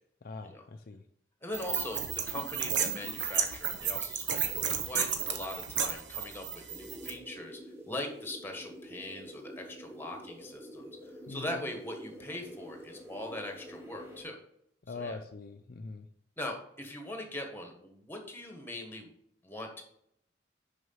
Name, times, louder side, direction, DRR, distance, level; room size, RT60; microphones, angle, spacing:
voice 1, 0.2-1.0 11.3-11.6 14.9-16.1, left 3 dB, 50° left, 6 dB, 0.5 m, -42 dB
voice 2, 1.4-7.6 7.9-14.4 14.9-15.2 16.4-19.1 19.4-19.8, left 1 dB, 10° left, 3 dB, 1.4 m, -41 dB
sound 1, 1.5-7.1, right 8 dB, 70° right, 1.0 m, -33 dB
sound 2, 6.7-14.2, equal, 15° right, 2.0 m, -48 dB
6.3 x 5.7 x 5.6 m, 0.72 s
head